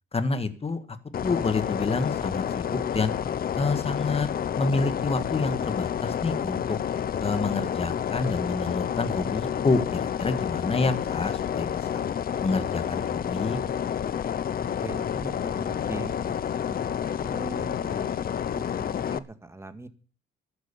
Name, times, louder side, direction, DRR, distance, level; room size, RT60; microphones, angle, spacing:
voice 1, 0.1-3.1 3.6-4.3 4.6-6.8 7.2-12.0 12.4-13.6, left 3 dB, 30° left, 11 dB, 1.8 m, -28 dB
sound 1, 1.1-19.2, left 9 dB, 50° left, 0.8 m, -29 dB
voice 2, 14.6-18.1 18.5-19.9, right 2 dB, 15° right, 9 dB, 1.8 m, -41 dB
12.5 x 11.5 x 7.0 m, 0.40 s
cardioid pair, 90°, 20 cm